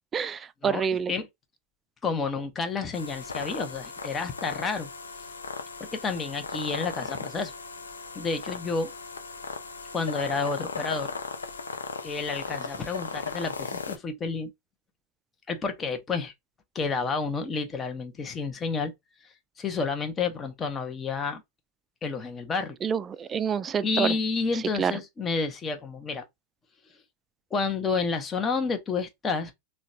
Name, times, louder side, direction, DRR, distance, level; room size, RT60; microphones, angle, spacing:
voice 1, 0.1-1.1 22.8-24.1 24.8-24.9, right 7 dB, 25° right, 0.3 m, -27 dB
voice 2, 0.6-1.3 2.0-4.9 5.8-7.5 8.2-8.9 9.9-11.1 12.0-14.5 15.5-16.3 16.7-18.9 19.6-21.4 22.0-22.8 23.8-26.2 27.5-29.5, left 4 dB, 25° left, 0.7 m, -30 dB
sound 1, 2.9-14.0, left 4 dB, 85° left, 0.5 m, -37 dB
3.8 x 2.2 x 2.6 m
hypercardioid pair, 90°, 0 cm